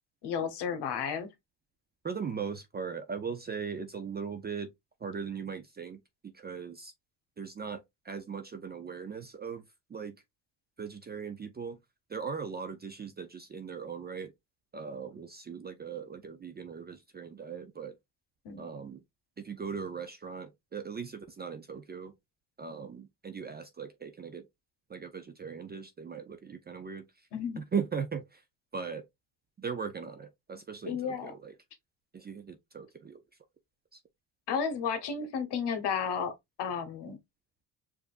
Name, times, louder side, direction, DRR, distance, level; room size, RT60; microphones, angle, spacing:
voice 1, 0.2-1.3 18.4-18.7 27.3-27.6 30.9-31.3 34.5-36.3 36.6-37.2, left 6 dB, 60° left, 1.2 m, -32 dB
voice 2, 2.0-4.7 5.0-6.9 7.4-9.6 9.9-10.2 10.8-11.8 12.1-14.3 14.7-18.0 18.6-19.0 19.4-22.2 22.6-24.5 24.9-27.3 27.6-28.4 28.7-29.1 29.6-31.6 32.1-33.2 33.9-34.0, right 6 dB, 20° right, 0.4 m, -39 dB
5.0 x 2.7 x 2.4 m
cardioid pair, 100°, 47 cm